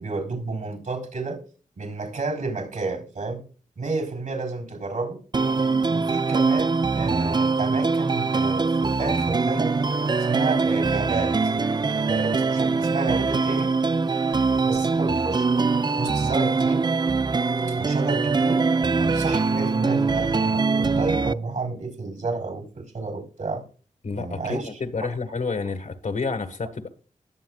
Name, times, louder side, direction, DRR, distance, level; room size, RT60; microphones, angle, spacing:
voice 1, 0.0-1.4 1.8-3.4 3.8-5.2 5.9-9.7 10.2-11.3 12.0-13.8 14.6-15.5 16.0-16.9 17.7-18.6 19.0-23.7 24.1-24.8, right 3 dB, 70° right, 4.0 m, -30 dB
sound 1, 5.3-21.3, right 4 dB, 30° right, 0.4 m, -23 dB
voice 2, 24.0-26.9, left 4 dB, 65° left, 1.7 m, -29 dB
20.0 x 7.3 x 2.4 m
cardioid pair, 50°, 14 cm